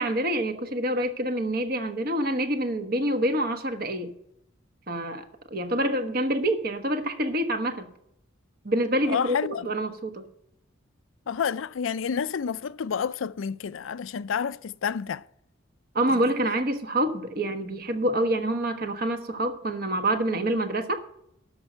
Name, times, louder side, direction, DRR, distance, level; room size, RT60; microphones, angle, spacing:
voice 1, 0.0-4.1 4.9-5.2 5.5-7.9 8.6-10.2 15.9-21.0, right 1 dB, 50° right, 1.2 m, -26 dB
voice 2, 9.1-9.7 11.3-15.2 16.1-16.2, left 7 dB, 85° left, 0.4 m, -29 dB
12.5 x 5.3 x 7.8 m
head